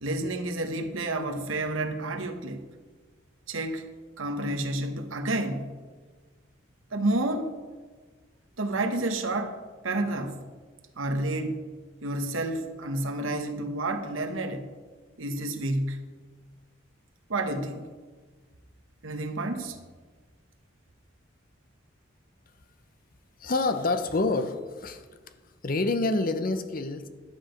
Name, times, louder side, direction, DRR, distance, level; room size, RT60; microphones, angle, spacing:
voice 1, 0.0-2.6 3.5-3.8 4.2-5.8 6.9-7.5 8.6-10.5 11.0-11.6 12.0-14.7 15.2-16.0 17.3-17.9 19.0-19.8, right 2 dB, 85° right, 6 dB, 1.2 m, -30 dB
voice 2, 23.4-25.1 25.6-27.1, left 3 dB, 45° left, 10 dB, 0.7 m, -27 dB
11.0 x 7.9 x 5.2 m, 1.4 s
head